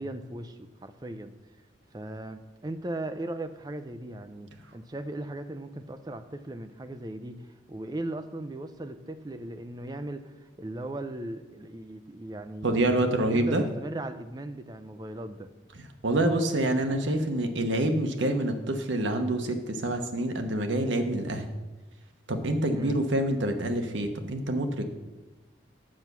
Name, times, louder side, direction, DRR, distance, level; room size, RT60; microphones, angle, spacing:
voice 1, 0.0-1.3 1.9-13.0 13.3-15.5 22.7-23.0, right 1 dB, 20° right, 9 dB, 0.5 m, -38 dB
voice 2, 12.6-13.6 16.0-21.5 22.3-24.9, right 1 dB, 75° right, 6 dB, 1.0 m, -27 dB
7.5 x 6.8 x 6.0 m, 1.1 s
head